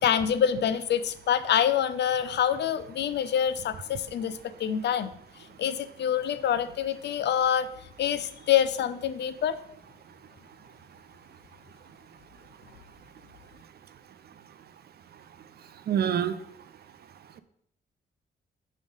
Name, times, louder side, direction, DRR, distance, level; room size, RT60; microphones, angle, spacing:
voice 1, 0.0-5.1 5.6-7.7 8.0-9.6, left 9 dB, 75° left, 13 dB, 0.5 m, -26 dB
voice 2, 15.9-16.4, right 9 dB, 60° right, 12 dB, 0.5 m, -25 dB
6.3 x 3.2 x 5.4 m, 0.70 s
cardioid pair, 90°, 18 cm